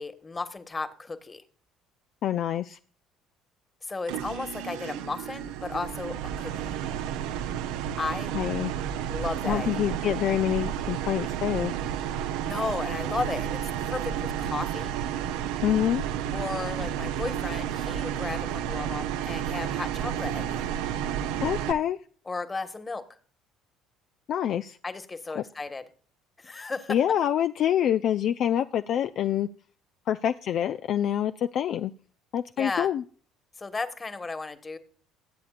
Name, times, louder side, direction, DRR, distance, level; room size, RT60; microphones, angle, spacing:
voice 1, 0.0-1.4 3.8-6.7 7.9-8.3 9.1-9.8 12.5-15.0 16.3-20.7 22.3-23.0 24.8-25.8 26.4-27.0 32.6-32.9 33.6-34.8, left 3 dB, 25° left, 10 dB, 1.6 m, -34 dB
voice 2, 2.2-2.8 8.3-8.7 9.5-11.7 15.6-16.0 21.4-22.0 24.3-24.8 25.4-25.5 26.9-29.5 30.1-31.9 32.3-33.0, left 10 dB, 60° left, 10 dB, 0.4 m, -26 dB
sound 1, 4.1-21.7, right 10 dB, 75° right, 0.8 m, -31 dB
20.5 x 8.5 x 2.5 m, 0.43 s
hypercardioid pair, 65°, 0 cm